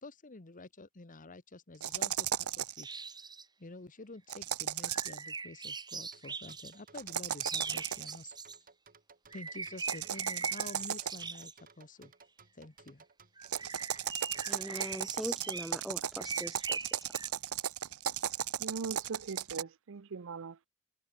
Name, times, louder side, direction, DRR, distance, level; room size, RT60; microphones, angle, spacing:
voice 1, 0.0-3.0 3.6-8.4 9.3-12.1 12.5-13.0, left 2 dB, 40° left, 1.3 m, -49 dB
sound 1, 1.8-2.8 4.3-5.3 6.9-8.2 9.8-11.4 13.4-19.6, right 9 dB, 90° right, 1.1 m, -36 dB
sound 2, 2.8-3.4 4.8-6.8 7.4-8.6 9.3-11.5 13.4-15.7 16.2-17.3, right 4 dB, 20° right, 3.1 m, -41 dB
sound 3, 6.1-14.9, right 5 dB, 40° right, 5.4 m, -59 dB
voice 2, 14.5-16.8, equal, ahead, 0.8 m, -41 dB
voice 3, 18.6-20.7, right 5 dB, 65° right, 0.6 m, -40 dB
head